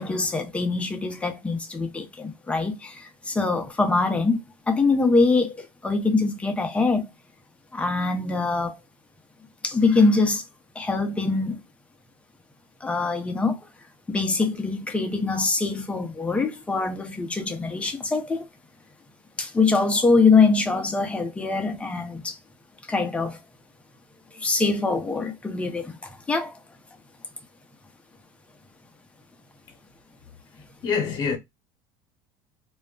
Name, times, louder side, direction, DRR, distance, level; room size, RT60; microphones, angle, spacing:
voice 1, 0.0-4.4 4.7-7.1 7.7-8.8 9.6-10.4 10.8-11.6 12.8-13.6 14.1-18.5 19.4-22.4 22.9-23.4 24.3-26.6, left 3 dB, 10° left, 0.6 m, -23 dB
voice 2, 30.8-31.4, left 6 dB, 40° left, 0.8 m, -25 dB
2.3 x 2.1 x 3.6 m
cardioid pair, 135°, 10 cm